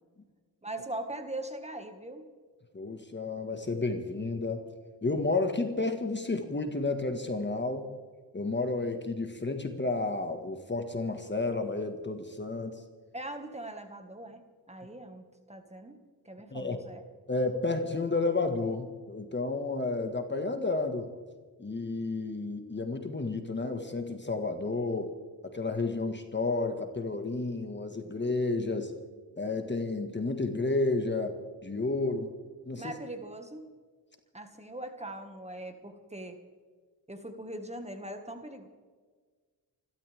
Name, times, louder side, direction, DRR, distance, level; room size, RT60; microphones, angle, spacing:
voice 1, 0.6-2.3 13.1-14.4 14.7-16.0 16.3-17.0 32.8-33.7 34.3-36.4 37.1-38.7, right 1 dB, 15° right, 6 dB, 2.0 m, -41 dB
voice 2, 2.7-4.7 5.0-7.8 8.3-12.8 16.5-16.8 17.3-21.1 21.6-25.1 25.5-28.9 29.4-31.3 31.6-32.3 32.7-32.9, left 3 dB, 25° left, 6 dB, 1.9 m, -31 dB
29.0 x 12.5 x 3.7 m, 1.5 s
supercardioid pair, 65°, 46 cm